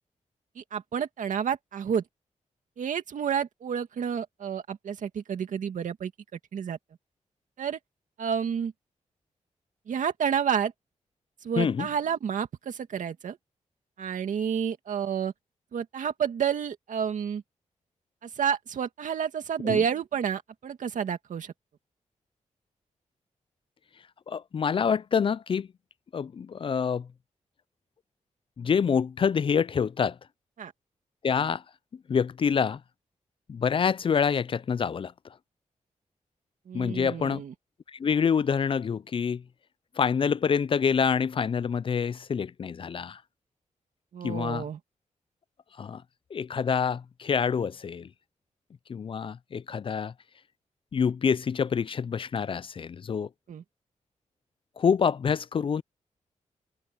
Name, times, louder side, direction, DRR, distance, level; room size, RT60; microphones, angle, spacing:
voice 1, 0.6-2.0 2.8-6.1 6.5-6.8 7.6-7.8 8.2-8.7 9.9-10.7 11.4-13.4 14.0-15.3 15.7-17.4 18.2-21.5 30.6-30.7 36.7-37.5 44.1-44.8 53.5-53.6, right 7 dB, 85° right, 2.2 m, -30 dB
voice 2, 11.6-11.9 19.6-19.8 24.3-25.7 26.1-27.1 28.6-30.2 31.2-31.6 32.1-32.8 33.5-35.1 36.7-37.4 37.9-39.4 40.0-43.2 44.2-44.7 45.8-46.0 46.3-48.1 48.9-50.1 50.9-53.3 54.8-55.8, left 6 dB, 45° left, 0.4 m, -26 dB
wide cardioid pair, 105°, 13 cm